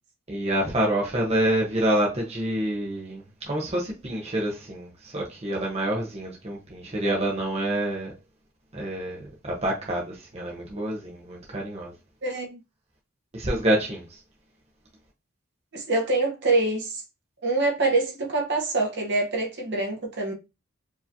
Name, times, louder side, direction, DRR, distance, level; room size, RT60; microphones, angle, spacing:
voice 1, 0.3-8.1 8.7-11.9 13.3-14.0, right 1 dB, 30° right, 1.0 m, -27 dB
voice 2, 12.2-12.6 15.7-17.0 17.4-20.3, right 2 dB, 55° right, 1.4 m, -25 dB
4.8 x 3.0 x 2.7 m
head